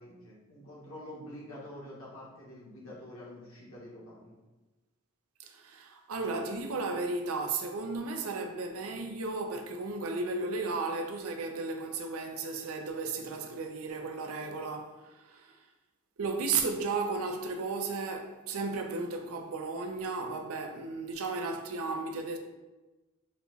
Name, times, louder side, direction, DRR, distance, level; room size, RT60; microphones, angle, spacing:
voice 1, 0.0-4.3, left 1 dB, 75° left, 1.4 m, -47 dB
voice 2, 5.4-15.6 16.2-22.4, right 3 dB, 85° right, 0.5 m, -34 dB
4.2 x 2.3 x 4.0 m
head